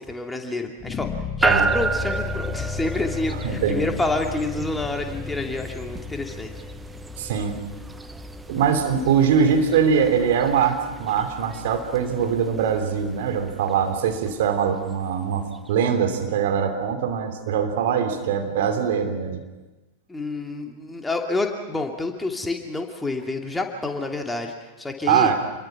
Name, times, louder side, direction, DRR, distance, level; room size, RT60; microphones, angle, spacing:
voice 1, 0.0-6.5 20.1-25.3, left 2 dB, 10° left, 3 dB, 2.7 m, -28 dB
sound 1, 0.8-9.9, left 5 dB, 25° left, 1.8 m, -35 dB
sound 2, 1.4-15.7, right 3 dB, 10° right, 1.0 m, -32 dB
voice 2, 3.4-3.8 7.2-7.5 8.5-19.4 25.1-25.3, right 7 dB, 55° right, 5 dB, 3.0 m, -22 dB
28.5 x 22.5 x 6.0 m, 1.2 s
figure-of-eight pair, 90°, 0 cm